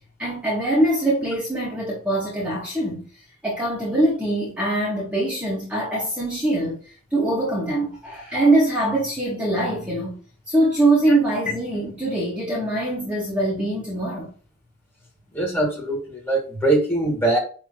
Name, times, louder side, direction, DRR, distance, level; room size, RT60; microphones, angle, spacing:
voice 1, 0.2-3.1 3.4-6.8 7.1-10.2 10.5-14.3, right 1 dB, 5° right, 2.0 m, -23 dB
voice 2, 15.3-17.4, right 2 dB, 10° left, 2.8 m, -22 dB
9.1 x 3.5 x 3.2 m
head